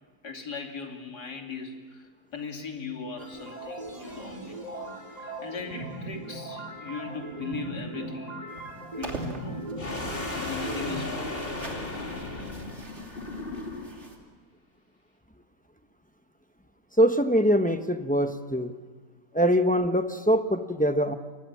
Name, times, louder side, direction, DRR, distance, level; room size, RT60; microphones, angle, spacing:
voice 1, 0.2-4.7 5.2-8.4 8.7-9.7 10.3-11.3, left 5 dB, 70° left, 2 dB, 3.3 m, -39 dB
sound 1, 3.2-11.1, right 2 dB, 20° right, 2.7 m, -39 dB
sound 2, 8.5-14.2, right 1 dB, 40° right, 3.1 m, -44 dB
sound 3, 9.8-14.1, left 2 dB, 35° left, 3.3 m, -35 dB
voice 2, 17.0-18.7 19.3-21.1, equal, 5° left, 7 dB, 0.7 m, -23 dB
28.0 x 23.5 x 7.3 m, 1.4 s
omnidirectional pair, 1.8 m